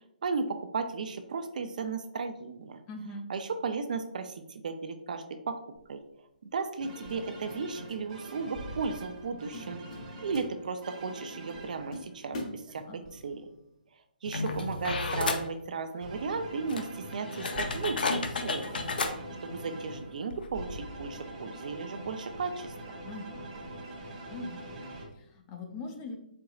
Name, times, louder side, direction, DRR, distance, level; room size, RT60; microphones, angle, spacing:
voice 1, 0.2-2.8 3.3-5.6 5.9-6.0 6.4-9.8 10.2-13.5 14.2-18.8 19.4-23.0, right 4 dB, 55° right, 8 dB, 0.4 m, -35 dB
voice 2, 2.9-3.3 12.7-13.0 23.0-23.5 23.9-24.0 24.3-26.2, left 2 dB, 15° left, 3 dB, 0.4 m, -42 dB
sound 1, 5.7-6.0 7.1-8.0 8.3-8.6 9.1-9.2 9.5-11.0 11.4-11.5 11.9-13.2, left 1 dB, 45° left, 1.0 m, -43 dB
sound 2, 6.8-12.4 13.0-13.7 14.5-15.2 16.0-25.1, right 1 dB, 30° right, 1.0 m, -44 dB
sound 3, 14.2-15.5 16.3-16.4 16.7-19.1 20.0-20.1 20.3-20.5, left 3 dB, 70° left, 0.6 m, -32 dB
4.5 x 3.8 x 2.3 m, 0.77 s
hypercardioid pair, 165°, 5 cm